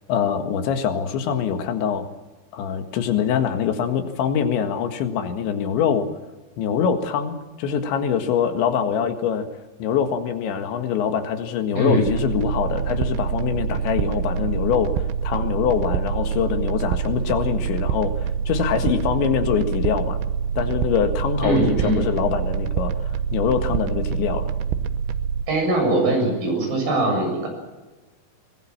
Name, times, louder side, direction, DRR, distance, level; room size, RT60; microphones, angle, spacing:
voice 1, 0.1-2.1 2.5-6.1 6.6-9.5 9.8-20.2 20.6-24.5, left 7 dB, 90° left, 7 dB, 4.1 m, -24 dB
sound 1, 12.1-25.5, right 7 dB, 90° right, 3.3 m, -26 dB
voice 2, 21.4-22.0 25.5-27.5, right 2 dB, 55° right, 2 dB, 9.3 m, -21 dB
23.5 x 20.5 x 7.4 m, 1.2 s
omnidirectional pair, 5.1 m